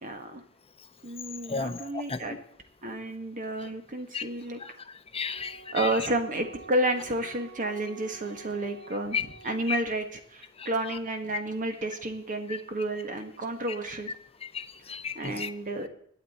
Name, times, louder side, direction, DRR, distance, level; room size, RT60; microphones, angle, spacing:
voice 1, 0.0-0.4 1.0-2.4 2.8-4.6 5.7-14.1 15.1-15.9, right 1 dB, 40° right, 6 dB, 1.5 m, -31 dB
voice 2, 1.5-2.2 4.1-4.2 4.6-4.7 5.1-5.9 9.1-9.2 10.6-10.7 14.5-15.5, left 5 dB, 25° left, 10 dB, 0.8 m, -33 dB
Wind instrument woodwind instrument, 5.3-10.1, right 5 dB, 80° right, 3.2 m, -49 dB
21.5 x 8.4 x 4.3 m, 0.65 s
head